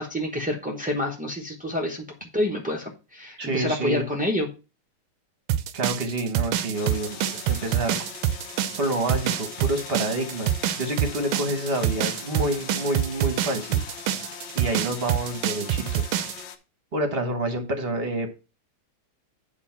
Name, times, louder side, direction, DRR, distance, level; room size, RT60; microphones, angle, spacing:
voice 1, 0.0-4.5, left 1 dB, 10° right, -2 dB, 0.5 m, -28 dB
voice 2, 3.4-4.0 5.7-8.0 8.8-13.8 14.5-16.0 16.9-18.3, right 1 dB, 35° right, 6 dB, 1.1 m, -28 dB
sound 1, 5.5-16.4, right 11 dB, 75° right, 1.3 m, -26 dB
sound 2, 6.7-16.6, left 7 dB, 70° left, 1.5 m, -41 dB
8.8 x 3.6 x 5.7 m, 0.30 s
omnidirectional pair, 2.4 m